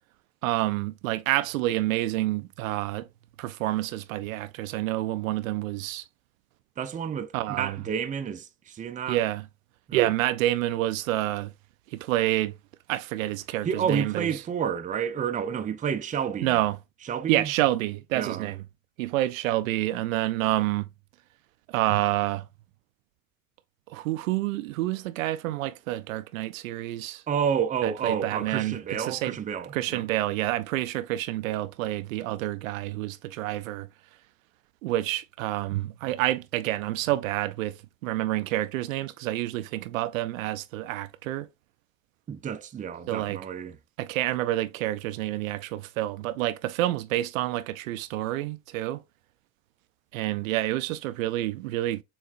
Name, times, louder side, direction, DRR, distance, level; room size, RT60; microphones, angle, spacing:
voice 1, 0.4-3.1 3.4-6.0 7.3-7.8 9.1-9.4 9.9-11.5 11.9-12.5 12.9-14.3 16.4-16.8 17.3-18.6 19.0-20.9 21.7-22.5 23.9-27.2 27.8-29.4 29.7-33.9 34.8-41.5 43.1-43.4 44.0-49.0 50.1-52.0, right 15 dB, 70° right, 0.5 m, -28 dB
voice 2, 6.8-9.2 9.9-10.0 13.6-16.6 17.0-17.5 18.1-18.5 27.3-30.1 42.3-43.8, right 7 dB, 20° right, 0.5 m, -30 dB
7.0 x 2.4 x 2.5 m
figure-of-eight pair, 60°, 42 cm